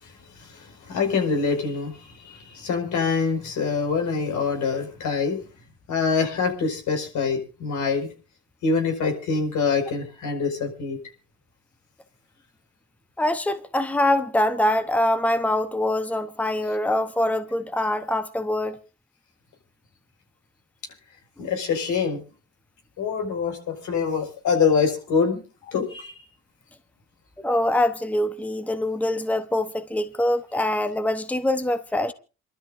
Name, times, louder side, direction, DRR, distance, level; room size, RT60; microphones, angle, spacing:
voice 1, 0.0-5.4 5.9-8.1 8.6-11.0 21.4-22.2 23.0-26.1, left 5 dB, 80° left, 5.3 m, -25 dB
voice 2, 13.2-18.8 27.4-32.1, left 1 dB, 5° left, 1.0 m, -24 dB
28.5 x 12.5 x 2.6 m
cardioid pair, 90°, 30 cm